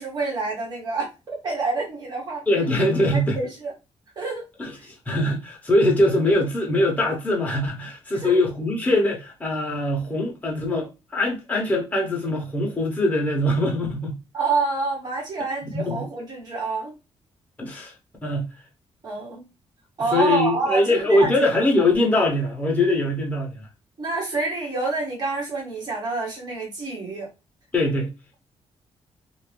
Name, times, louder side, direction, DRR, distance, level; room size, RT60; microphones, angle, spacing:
voice 1, 0.0-2.4 3.1-3.7 4.1-4.4 4.7-4.8 8.2-8.4 14.3-16.9 19.0-19.4 20.0-21.5 24.0-27.3, right 3 dB, 40° right, 1.3 m, -27 dB
voice 2, 2.5-3.4 4.6-14.2 15.7-16.0 17.6-17.9 18.2-18.5 20.1-23.7 27.7-28.1, left 1 dB, 15° left, 1.0 m, -22 dB
2.6 x 2.5 x 3.3 m
cardioid pair, 150°, 11 cm